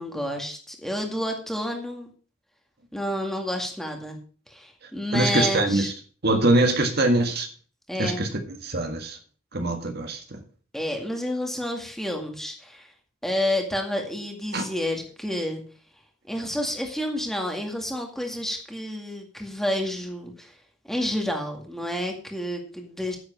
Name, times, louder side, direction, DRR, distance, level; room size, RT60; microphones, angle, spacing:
voice 1, 0.0-2.1 2.9-4.2 4.5-5.9 7.9-8.3 10.7-12.9 13.2-15.6 16.3-20.5 20.9-23.2, left 1 dB, ahead, 2.0 m, -29 dB
voice 2, 5.1-5.9 6.2-7.5 8.0-9.2 9.5-10.4 14.5-14.7, right 2 dB, 50° right, 1.8 m, -23 dB
10.0 x 8.1 x 6.0 m
head